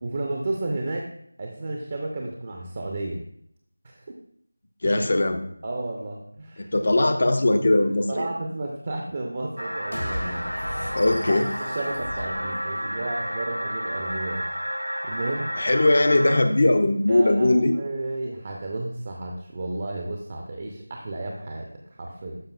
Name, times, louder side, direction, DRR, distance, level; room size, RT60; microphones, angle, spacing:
voice 1, 0.0-1.1 1.4-3.2 3.8-4.2 4.8-5.0 5.6-6.7 8.1-10.9 11.3-14.5 15.0-15.5 17.1-22.4, right 2 dB, 25° right, 1 dB, 0.6 m, -32 dB
voice 2, 4.8-5.4 6.6-8.3 10.9-11.5 15.6-17.7, left 2 dB, 40° left, 8 dB, 0.6 m, -20 dB
sound 1, 9.6-16.4, equal, 90° right, 0.4 m, -31 dB
sound 2, 9.9-13.3, equal, 70° left, 1.3 m, -35 dB
12.0 x 5.2 x 2.3 m, 0.70 s
figure-of-eight pair, 170°, 0 cm